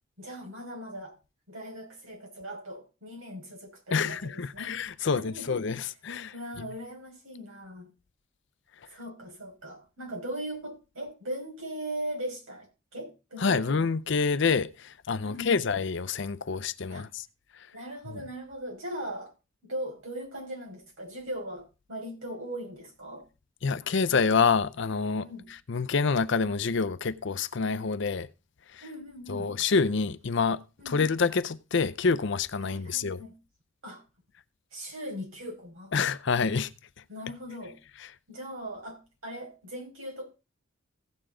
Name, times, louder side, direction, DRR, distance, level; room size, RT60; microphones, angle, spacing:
voice 1, 0.2-1.2 1.5-4.7 5.1-5.6 6.3-7.9 8.9-12.7 12.9-13.7 15.2-15.6 16.9-17.1 17.7-19.3 19.6-23.2 25.2-25.4 28.8-29.5 30.8-31.0 32.6-33.3 33.8-34.0 34.7-35.9 37.1-37.8 38.3-40.2, right 1 dB, 75° right, 5.2 m, -39 dB
voice 2, 3.9-6.7 13.4-17.3 23.6-25.3 25.7-28.3 28.7-28.8 29.3-33.2 35.9-36.7, left 5 dB, 60° left, 0.6 m, -27 dB
16.0 x 6.9 x 3.7 m
head